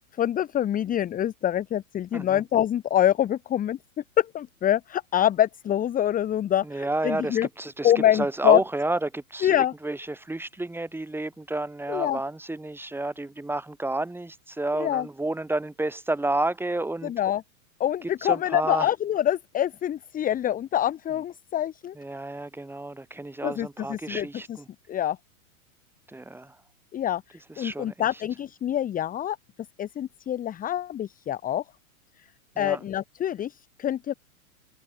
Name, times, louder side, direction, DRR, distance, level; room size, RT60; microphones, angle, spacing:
voice 1, 0.2-3.8 4.2-7.5 7.8-8.6 9.4-9.7 11.9-12.2 14.8-15.1 17.0-17.4 17.8-21.9 23.4-24.6 24.9-25.2 26.9-29.4 29.8-31.6 32.6-34.1, left 11 dB, 20° left, 1.1 m, -25 dB
voice 2, 2.1-2.4 6.6-17.1 18.0-18.9 22.0-24.7 26.1-26.6 27.5-28.2 32.6-32.9, right 2 dB, 5° right, 3.9 m, -31 dB
hypercardioid pair, 115°, 43 cm